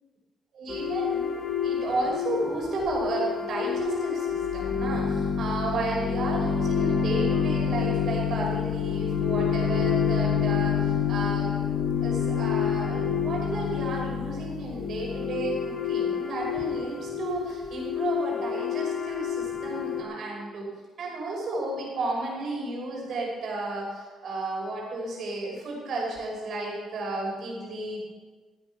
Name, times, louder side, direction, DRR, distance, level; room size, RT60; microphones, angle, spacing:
voice 1, 0.5-11.7 12.0-20.7 21.0-28.0, right 2 dB, 65° right, -2 dB, 5.5 m, -33 dB
sound 1, 0.7-20.0, left 7 dB, 45° left, 1.7 m, -28 dB
14.5 x 9.8 x 6.0 m, 1.4 s
cardioid pair, 90°, 0 cm